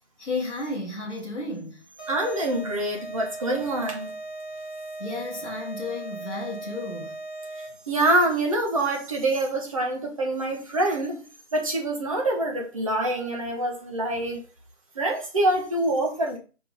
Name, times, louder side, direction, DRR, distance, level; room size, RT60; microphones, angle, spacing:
voice 1, 0.2-1.8 5.0-7.2, left 2 dB, 5° right, 0.9 m, -33 dB
sound 1, 2.0-7.9, right 2 dB, 15° left, 1.9 m, -38 dB
voice 2, 2.1-4.1 7.6-11.2 11.5-14.4 14.9-16.4, right 1 dB, 30° right, 1.7 m, -25 dB
5.9 x 5.2 x 3.8 m
figure-of-eight pair, 165°, 35 cm